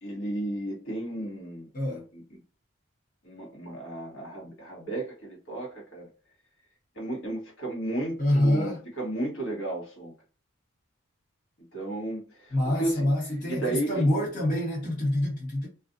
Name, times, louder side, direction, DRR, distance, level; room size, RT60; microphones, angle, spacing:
voice 1, 0.0-2.4 3.2-6.1 6.9-10.1 11.7-14.1, right 1 dB, 75° left, 1.3 m, -34 dB
voice 2, 8.2-8.8 12.5-15.7, left 1 dB, 40° left, 1.1 m, -26 dB
2.4 x 2.3 x 2.5 m
head